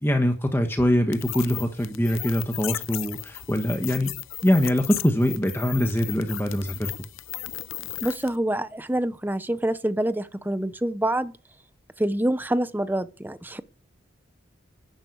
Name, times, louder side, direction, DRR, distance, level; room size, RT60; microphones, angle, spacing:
voice 1, 0.0-4.1 4.4-6.9, equal, 10° left, 1.3 m, -23 dB
sound 1, 1.1-8.4, left 14 dB, 85° left, 0.8 m, -36 dB
voice 2, 8.0-11.3 12.0-13.6, right 1 dB, 10° right, 0.7 m, -26 dB
11.5 x 10.0 x 7.0 m
head